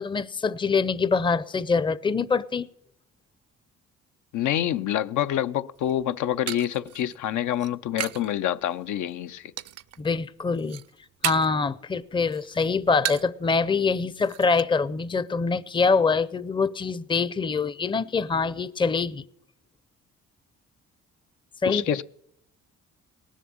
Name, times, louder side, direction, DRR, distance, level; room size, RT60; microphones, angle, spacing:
voice 1, 0.0-2.7 10.0-10.8 11.2-19.2 21.6-22.0, left 4 dB, 15° left, 0.5 m, -24 dB
voice 2, 4.3-9.5 21.6-22.0, left 11 dB, 75° left, 0.6 m, -27 dB
sound 1, 5.8-8.3 8.6-9.1 9.6-10.1 10.4-11.7 12.0-13.4 13.7-13.8 14.1-14.6, right 10 dB, 55° right, 0.5 m, -35 dB
18.5 x 7.4 x 8.6 m
cardioid pair, 90°, 30 cm